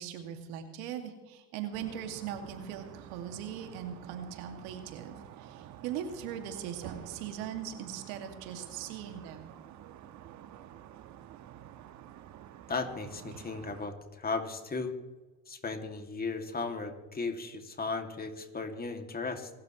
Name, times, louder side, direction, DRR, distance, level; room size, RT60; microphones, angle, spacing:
voice 1, 0.0-9.5, right 9 dB, 80° right, 5 dB, 2.3 m, -40 dB
sound 1, 1.7-13.9, right 11 dB, 55° right, 1.3 m, -49 dB
voice 2, 12.7-14.9 15.5-19.5, left 4 dB, 25° left, 5 dB, 2.4 m, -36 dB
25.5 x 13.0 x 3.1 m, 1.2 s
supercardioid pair, 85°, 34 cm